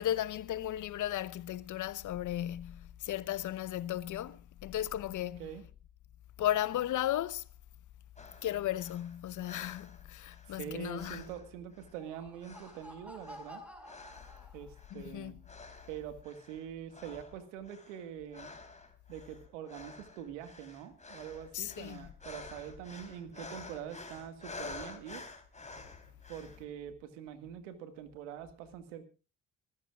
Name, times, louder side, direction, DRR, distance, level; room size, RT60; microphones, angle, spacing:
voice 1, 0.0-5.5 6.4-7.4 8.4-11.2 14.9-15.3 21.5-22.1, left 12 dB, 55° left, 1.0 m, -35 dB
sound 1, 8.2-10.6 10.9-12.1 12.4-14.5 14.8-15.1 15.4-16.6 16.9-26.6, left 3 dB, 20° left, 3.7 m, -50 dB
voice 2, 10.5-13.6 14.5-15.4 15.9-18.5 19.1-25.2 26.3-29.0, right 9 dB, 80° right, 1.9 m, -44 dB
Laughter, 11.8-15.0, equal, 5° right, 5.6 m, -52 dB
sound 2, 21.6-22.0 22.4-23.3 24.0-24.9 25.6-26.5, right 4 dB, 40° right, 4.6 m, -64 dB
25.5 x 14.0 x 2.4 m
hypercardioid pair, 50°, 36 cm